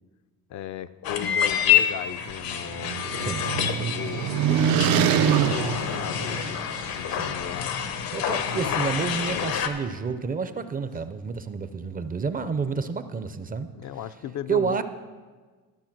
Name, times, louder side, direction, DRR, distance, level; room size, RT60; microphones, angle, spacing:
voice 1, 0.5-7.7 8.2-9.6 13.7-14.8, left 10 dB, 55° left, 12 dB, 0.5 m, -37 dB
sound 1, 1.0-9.7, left 9 dB, 80° left, 1.0 m, -27 dB
sound 2, 2.1-6.9, right 8 dB, 85° right, 0.7 m, -25 dB
voice 2, 3.2-3.7 7.1-7.4 8.1-13.7 14.5-14.8, right 5 dB, 25° right, 11 dB, 0.5 m, -29 dB
12.5 x 6.9 x 6.0 m, 1.4 s
cardioid pair, 130°, 35 cm